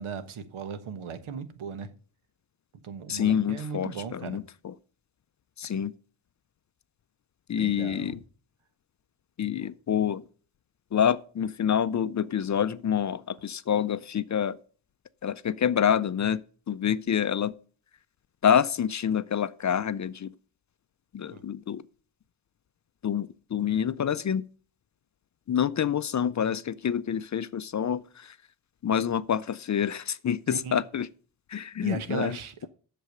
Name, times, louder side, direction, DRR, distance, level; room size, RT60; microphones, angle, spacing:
voice 1, 0.0-1.9 2.8-4.4 7.5-8.1 9.6-9.7 21.3-21.4 30.5-30.8 31.8-32.7, right 6 dB, 90° right, 1.3 m, -37 dB
voice 2, 3.1-4.7 5.6-5.9 7.5-8.2 9.4-10.2 10.9-14.6 15.2-16.4 16.7-17.5 18.4-20.3 21.1-21.8 23.0-24.4 25.5-28.3 28.8-31.1 31.5-32.4, left 8 dB, 40° left, 0.4 m, -27 dB
8.0 x 6.8 x 6.6 m
wide cardioid pair, 110°, 48 cm